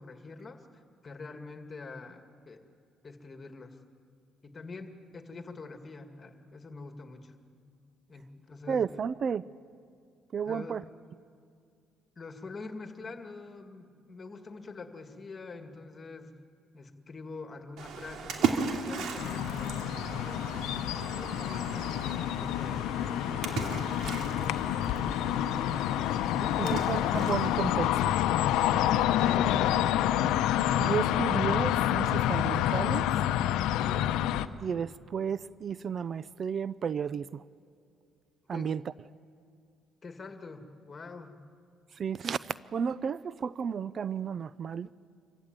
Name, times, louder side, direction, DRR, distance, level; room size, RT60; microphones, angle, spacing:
voice 1, 0.0-2.6 3.0-3.8 4.4-7.4 8.1-8.9 10.5-10.7 12.2-16.3 16.7-25.0 26.0-26.9 29.1-29.9 33.7-34.1 38.5-38.8 40.0-41.4, left 3 dB, 30° left, 6 dB, 2.1 m, -45 dB
voice 2, 8.7-9.5 10.3-10.8 26.6-28.1 30.8-33.1 34.6-37.4 38.5-38.8 42.0-44.9, right 7 dB, 45° right, 17 dB, 0.5 m, -33 dB
Splash splatter, 17.8-27.7, right 6 dB, 70° right, 2.6 m, -37 dB
sound 1, 19.2-34.5, left 11 dB, 90° left, 0.7 m, -28 dB
26.0 x 15.5 x 9.1 m, 2.3 s
cardioid pair, 105°, 0 cm